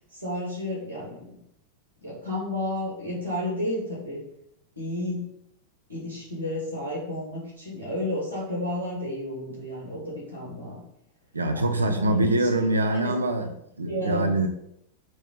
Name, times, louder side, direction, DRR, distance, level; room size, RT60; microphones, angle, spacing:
voice 1, 0.1-1.4 2.0-4.2 4.8-5.2 5.9-10.8 11.5-12.5 12.9-13.1 13.9-14.5, left 1 dB, 90° left, -5 dB, 2.5 m, -32 dB
voice 2, 11.3-14.5, right 1 dB, 80° right, 6 dB, 0.7 m, -24 dB
6.3 x 3.0 x 5.8 m, 0.75 s
figure-of-eight pair, 90°, 0 cm